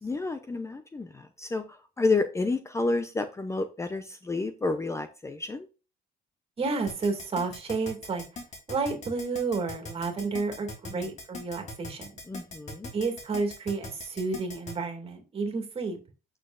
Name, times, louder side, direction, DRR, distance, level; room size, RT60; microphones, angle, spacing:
voice 1, 0.0-1.6 2.0-5.7 10.9-11.1 12.3-12.9, left 3 dB, 15° left, 0.6 m, -30 dB
voice 2, 6.6-8.2 8.7-12.1 12.9-16.0, right 4 dB, 35° right, 2.4 m, -31 dB
Keyboard (musical), 6.9-14.7, left 2 dB, 40° left, 3.1 m, -40 dB
8.7 x 6.4 x 2.5 m
cardioid pair, 110°, 17 cm